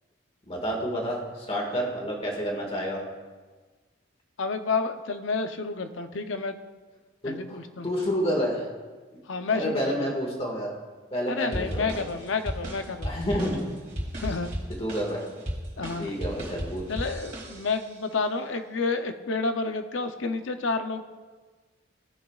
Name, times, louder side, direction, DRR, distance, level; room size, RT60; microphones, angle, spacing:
voice 1, 0.5-3.0 7.2-8.7 9.5-10.7 11.1-12.0 13.0-13.6 14.7-15.2 16.0-16.8, equal, 30° left, -1 dB, 1.8 m, -29 dB
voice 2, 4.4-6.6 7.3-7.9 9.3-10.1 11.3-13.1 14.2-14.5 15.8-16.1 16.9-21.0, left 4 dB, 75° left, 8 dB, 0.7 m, -30 dB
sound 1, 11.5-17.9, equal, 40° right, 2.7 m, -35 dB
17.0 x 6.2 x 2.4 m, 1.4 s
head